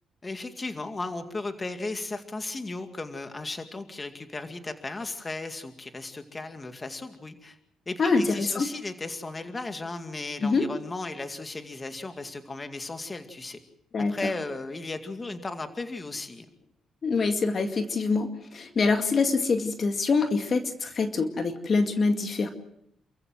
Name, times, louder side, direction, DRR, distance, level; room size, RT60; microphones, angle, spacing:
voice 1, 0.2-7.6 7.9-13.6 14.1-16.5, left 3 dB, 25° left, 7 dB, 2.2 m, -35 dB
voice 2, 8.0-8.7 10.4-10.7 13.9-14.3 17.0-22.5, left 4 dB, 45° left, 6 dB, 2.2 m, -25 dB
28.5 x 15.0 x 7.8 m, 0.75 s
cardioid pair, 90°, 0 cm